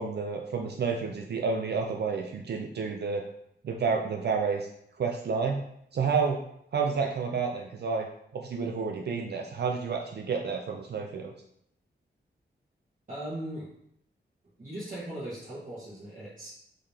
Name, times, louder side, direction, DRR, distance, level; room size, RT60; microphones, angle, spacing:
voice 1, 0.0-3.2 3.6-4.7 5.0-5.6 5.9-6.4 6.7-8.1 8.3-11.3, right 5 dB, 60° right, 2 dB, 0.4 m, -30 dB
voice 2, 13.1-13.7 14.6-16.5, right 1 dB, 45° right, -11 dB, 1.2 m, -38 dB
3.9 x 3.2 x 2.7 m, 0.72 s
wide cardioid pair, 125°, 19 cm